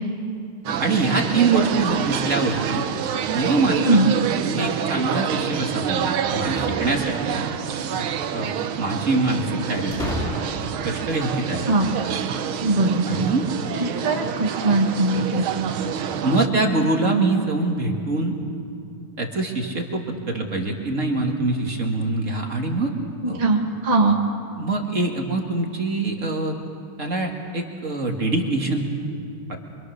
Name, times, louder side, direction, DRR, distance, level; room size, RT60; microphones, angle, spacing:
sound 1, 0.6-16.5, right 8 dB, 85° right, 1.8 m, -27 dB
voice 1, 0.8-2.9 3.3-4.0 4.4-7.4 8.3-10.4 10.8-12.2 13.1-13.5 16.2-18.4 19.2-22.9 23.3-23.4 24.6-26.5 27.0-28.9 29.5-29.6, right 3 dB, 40° right, 2 dB, 2.2 m, -24 dB
sound 2, 6.5-7.4 9.9-11.0, left 1 dB, ahead, 4.2 m, -31 dB
voice 2, 12.6-13.3 13.8-15.5 23.2-24.2, right 2 dB, 20° right, 0 dB, 1.6 m, -20 dB
25.5 x 25.5 x 6.5 m, 2.5 s
omnidirectional pair, 2.2 m